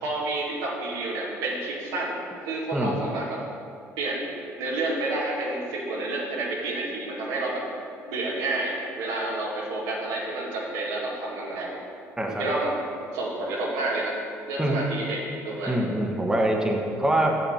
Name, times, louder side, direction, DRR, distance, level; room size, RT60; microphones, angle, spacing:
voice 1, 0.0-3.4 4.0-7.6 8.1-11.8 12.3-12.7 13.1-14.1 14.5-15.8 16.9-17.0, right 2 dB, 85° right, -4 dB, 1.8 m, -29 dB
voice 2, 12.2-12.5 14.6-14.8 15.6-17.4, right 1 dB, 10° right, 0 dB, 1.3 m, -24 dB
7.3 x 6.9 x 5.6 m, 2.4 s
supercardioid pair, 70°, 6 cm